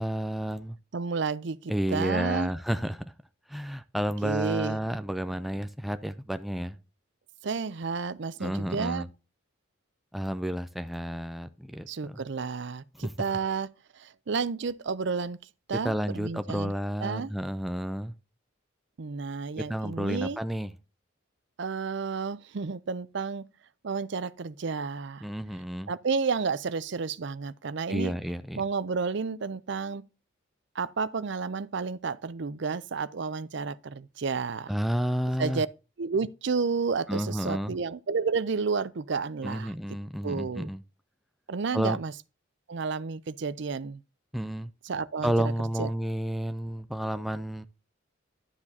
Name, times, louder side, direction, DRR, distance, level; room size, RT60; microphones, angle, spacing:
voice 1, 0.0-0.8 1.7-3.1 3.5-6.8 8.4-9.1 10.1-12.2 13.0-13.1 15.8-18.1 19.6-20.7 25.2-25.9 27.9-28.6 34.7-35.6 37.1-37.8 39.4-40.8 41.7-42.0 44.3-44.7 45.2-47.7, equal, ahead, 0.4 m, -31 dB
voice 2, 0.9-2.5 4.2-4.8 7.4-9.0 11.9-13.7 14.0-15.4 15.7-16.7 17.0-17.3 19.0-20.4 21.6-23.4 23.8-25.3 25.9-28.1 28.6-30.0 30.8-34.7 35.4-35.7 36.0-39.7 40.2-40.7 41.5-42.1 42.7-44.0 44.8-45.5 45.8-45.9, right 5 dB, 60° right, 0.5 m, -31 dB
11.5 x 7.2 x 2.8 m
head